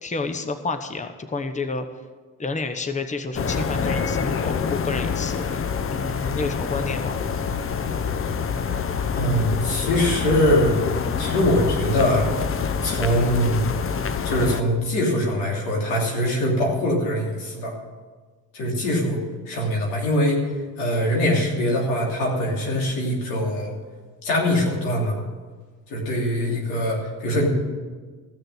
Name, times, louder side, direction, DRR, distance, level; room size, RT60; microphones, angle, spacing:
voice 1, 0.0-1.9 2.4-5.5 5.9-7.2, left 3 dB, 20° left, 8 dB, 1.0 m, -29 dB
sound 1, 3.3-14.6, left 6 dB, 35° left, 0.8 m, -26 dB
voice 2, 9.1-10.8 11.2-12.3 12.8-13.6 14.2-17.7 18.5-19.2 19.5-23.7 24.2-25.2 25.9-27.5, equal, 90° left, -2 dB, 3.1 m, -22 dB
15.0 x 6.6 x 7.7 m, 1.4 s
supercardioid pair, 70°, 37 cm